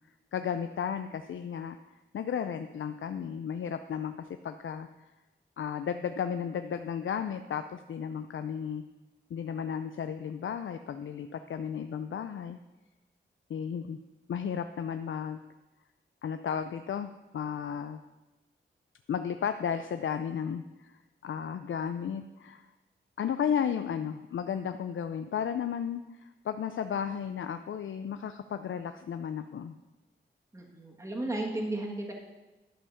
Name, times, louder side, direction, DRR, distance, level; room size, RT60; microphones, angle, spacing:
voice 1, 0.3-5.1 5.6-8.8 9.3-12.6 13.5-14.0 14.3-15.4 16.2-18.0 19.1-22.7 23.2-29.8, left 8 dB, 75° left, 9 dB, 0.4 m, -34 dB
voice 2, 30.5-32.1, right 1 dB, 15° right, -1 dB, 1.5 m, -34 dB
11.0 x 5.6 x 6.7 m, 1.1 s
wide cardioid pair, 140°, 20 cm